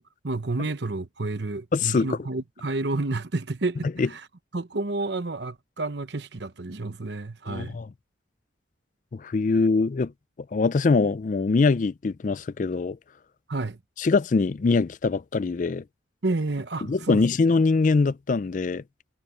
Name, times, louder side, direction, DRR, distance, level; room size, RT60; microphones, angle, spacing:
voice 1, 0.0-4.3 4.5-7.8 13.5-13.8 16.2-17.2, right 2 dB, 65° right, 1.0 m, -30 dB
voice 2, 1.7-2.2 4.0-4.1 7.5-7.9 9.1-10.1 10.5-13.0 14.0-15.8 16.9-18.8, left 4 dB, 45° left, 0.4 m, -23 dB
head